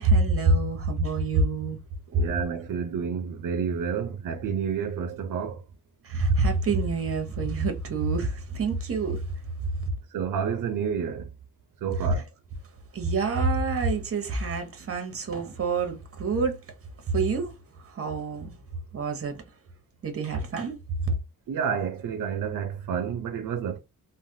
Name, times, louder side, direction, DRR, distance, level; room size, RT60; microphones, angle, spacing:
voice 1, 0.0-1.8 2.1-2.2 6.0-9.2 12.0-12.1 12.9-16.6 17.1-17.5 17.9-18.5 18.9-19.4 20.0-21.1, right 3 dB, 45° right, 0.9 m, -26 dB
voice 2, 2.1-5.6 10.1-11.3 11.8-12.3 21.5-23.8, right 7 dB, 70° right, 0.5 m, -29 dB
3.2 x 2.1 x 2.7 m
wide cardioid pair, 125°, 32 cm